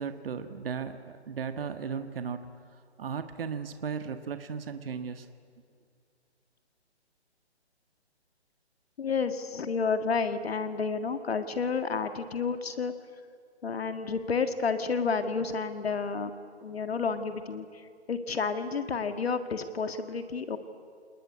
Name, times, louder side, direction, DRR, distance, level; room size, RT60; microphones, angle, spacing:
voice 1, 0.0-2.5 3.0-5.3, right 6 dB, 55° right, 8 dB, 1.5 m, -36 dB
voice 2, 9.0-12.9 13.6-16.3 16.6-20.6, left 5 dB, 65° left, 9 dB, 1.9 m, -30 dB
27.5 x 20.5 x 9.7 m, 2.2 s
hypercardioid pair, 155°, 33 cm